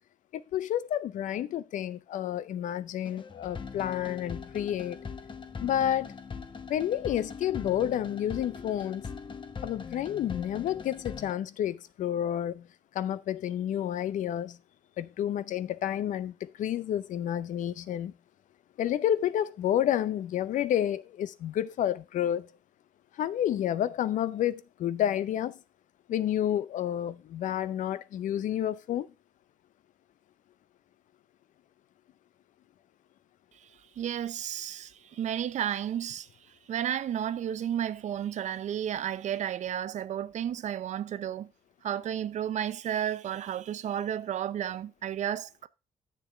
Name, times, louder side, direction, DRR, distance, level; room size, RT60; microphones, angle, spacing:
voice 1, 0.3-5.0 5.6-6.1 6.7-9.1 9.6-12.7 12.9-14.6 15.0-18.1 18.8-22.5 23.2-25.6 26.1-29.1, left 11 dB, 65° left, 0.6 m, -30 dB
sound 1, 3.1-11.3, left 5 dB, 35° left, 0.9 m, -41 dB
voice 2, 34.0-36.3 36.7-41.5 41.8-45.7, right 10 dB, 60° right, 0.6 m, -32 dB
9.9 x 6.9 x 3.4 m
supercardioid pair, 70°, 14 cm